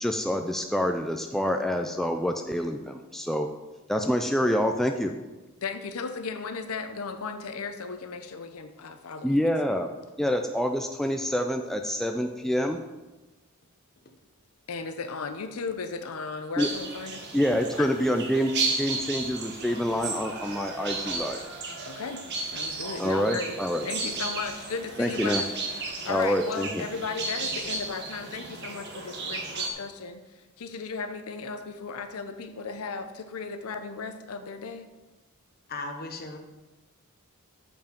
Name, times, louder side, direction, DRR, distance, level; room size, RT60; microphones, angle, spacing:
voice 1, 0.0-3.5 3.9-5.1 9.2-9.9 10.2-12.8 16.6-16.7 17.3-21.4 23.0-23.9 25.0-25.4 26.1-26.8, equal, ahead, 4 dB, 0.3 m, -27 dB
voice 2, 5.6-9.6 14.7-17.2 17.8-17.9 21.9-23.6 23.8-34.9, left 4 dB, 85° left, 8 dB, 0.6 m, -36 dB
sound 1, 16.6-29.7, right 3 dB, 50° right, 1.2 m, -34 dB
voice 3, 35.7-36.4, left 2 dB, 45° left, 4 dB, 1.0 m, -36 dB
7.0 x 5.5 x 5.1 m, 1.2 s
head